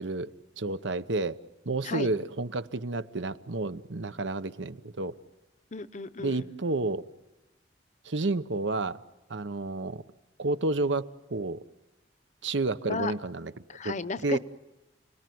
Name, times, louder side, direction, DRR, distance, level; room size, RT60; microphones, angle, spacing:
voice 1, 0.0-1.4 1.7-5.1 6.2-7.0 8.0-9.0 9.3-10.0 10.4-11.6 12.4-13.5 13.8-14.0 14.2-14.4, right 2 dB, 80° right, 1.0 m, -30 dB
voice 2, 5.7-6.5 12.9-13.1 13.7-14.4, left 4 dB, 40° left, 0.9 m, -34 dB
29.5 x 20.0 x 9.5 m
head